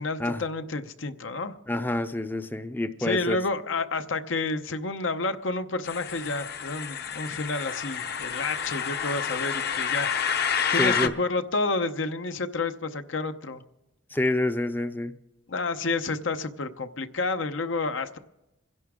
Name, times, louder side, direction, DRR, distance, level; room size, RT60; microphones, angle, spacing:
voice 1, 0.0-1.5 3.0-10.1 10.7-13.6 15.5-18.2, left 3 dB, 85° left, 9 dB, 0.8 m, -30 dB
voice 2, 1.7-3.4 10.7-11.1 14.1-15.1, left 1 dB, 10° left, 10 dB, 0.4 m, -27 dB
sound 1, 5.8-11.1, left 7 dB, 55° left, 0.8 m, -29 dB
27.0 x 11.0 x 3.6 m, 0.94 s
head